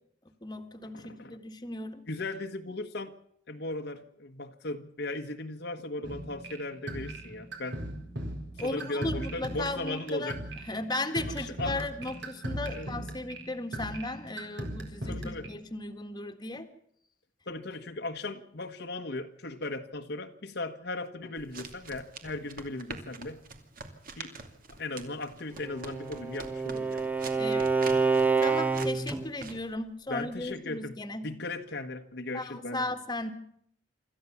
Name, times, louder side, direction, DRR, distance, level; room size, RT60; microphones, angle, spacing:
voice 1, 0.4-2.0 8.6-10.4 10.6-16.7 27.4-31.3 32.3-33.3, left 2 dB, 20° left, 7 dB, 1.7 m, -36 dB
voice 2, 0.9-1.4 2.1-3.1 3.5-7.8 8.6-10.4 11.3-11.8 12.7-12.9 15.0-15.5 17.5-23.4 24.1-24.3 24.8-27.0 30.1-30.9 31.2-32.8, left 2 dB, 60° left, 6 dB, 1.4 m, -37 dB
sound 1, 6.0-15.5, right 1 dB, 65° right, 4.5 m, -39 dB
sound 2, 21.4-29.7, right 4 dB, 50° right, 2.6 m, -45 dB
Bowed string instrument, 25.6-29.2, right 4 dB, 10° right, 1.1 m, -27 dB
26.0 x 14.0 x 7.1 m, 0.68 s
head